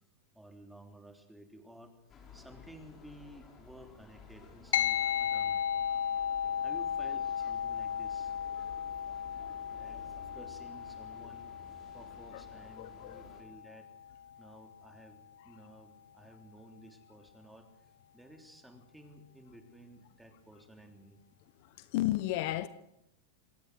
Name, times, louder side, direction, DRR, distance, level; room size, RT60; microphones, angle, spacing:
voice 1, 0.3-2.0 2.3-5.8 6.6-8.3 9.7-13.9 14.4-17.7 18.1-21.2, right 1 dB, 5° right, 3.4 m, -54 dB
sound 1, 2.1-13.4, left 5 dB, 25° left, 5.6 m, -55 dB
sound 2, 4.7-14.4, left 9 dB, 80° left, 1.4 m, -35 dB
voice 2, 12.8-13.2 21.6-22.7, left 15 dB, 55° left, 1.0 m, -33 dB
27.0 x 19.5 x 6.3 m
supercardioid pair, 140°, 0 cm